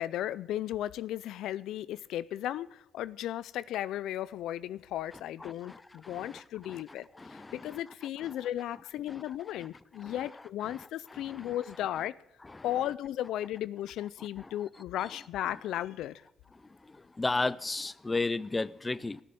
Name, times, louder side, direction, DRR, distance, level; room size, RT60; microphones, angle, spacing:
voice 1, 0.0-12.2 12.6-16.1, left 12 dB, 85° left, 0.4 m, -35 dB
voice 2, 7.2-7.5 9.1-9.2 10.0-10.1 11.4-11.5 17.2-19.2, left 3 dB, 20° left, 0.6 m, -32 dB
16.0 x 6.9 x 9.2 m
cardioid pair, 90°, 0 cm